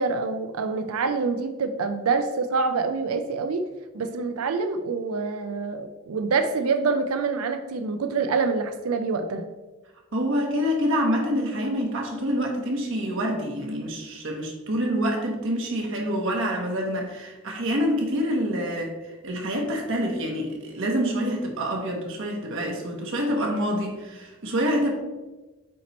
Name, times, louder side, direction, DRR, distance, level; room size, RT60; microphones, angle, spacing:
voice 1, 0.0-3.7 3.9-9.5, right 4 dB, 80° right, 8 dB, 0.5 m, -26 dB
voice 2, 10.1-24.9, equal, 60° right, 0 dB, 1.0 m, -26 dB
8.4 x 3.0 x 4.1 m, 1.2 s
head